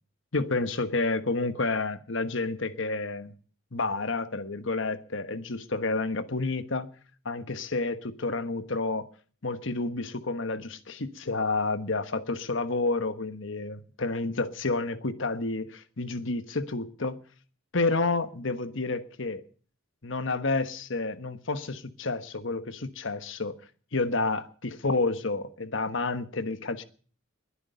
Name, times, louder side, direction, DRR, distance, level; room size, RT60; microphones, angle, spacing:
voice 1, 0.3-3.3 3.7-6.9 7.2-9.1 9.4-17.2 17.7-19.4 20.0-23.5 23.9-26.8, left 3 dB, 60° left, 1.2 m, -30 dB
21.5 x 9.9 x 6.8 m
head